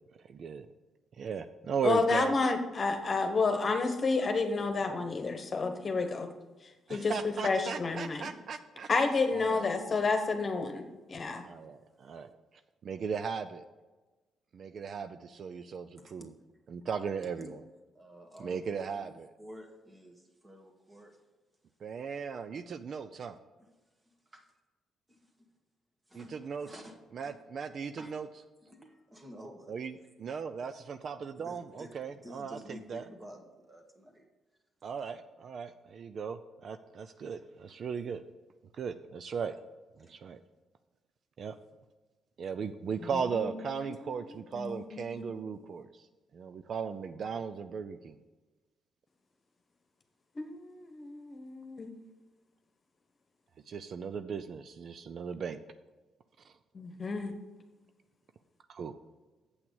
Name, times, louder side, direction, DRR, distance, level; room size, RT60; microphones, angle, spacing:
voice 1, 0.2-0.7 1.2-2.3 6.9-8.9 9.3-9.6 11.4-12.3 12.8-13.6 14.5-16.3 16.7-17.6 18.4-19.3 21.8-23.4 26.1-26.7 27.1-28.3 29.7-29.9 30.2-30.7 31.0-33.0 34.8-38.2 38.7-39.6 40.0-40.4 41.4-41.6 42.4-46.1 46.3-48.2 53.7-55.6 56.4-56.5 58.7-59.0, right 6 dB, 55° right, 11 dB, 0.4 m, -37 dB
voice 2, 1.8-6.3 6.6-8.3 8.9-11.4 43.0-43.6 43.9-45.5 50.3-52.1 56.7-57.4, left 4 dB, 40° left, 6 dB, 1.2 m, -31 dB
voice 3, 17.9-21.2 23.6-23.7 24.0-24.5 25.1-25.5 26.1-27.0 27.2-27.4 28.0-28.1 28.6-29.8 31.4-34.3 34.9-35.1 37.7-37.8 40.0-40.1, equal, 25° right, 3 dB, 1.8 m, -51 dB
8.0 x 6.0 x 7.0 m, 1.2 s
cardioid pair, 90°, 0 cm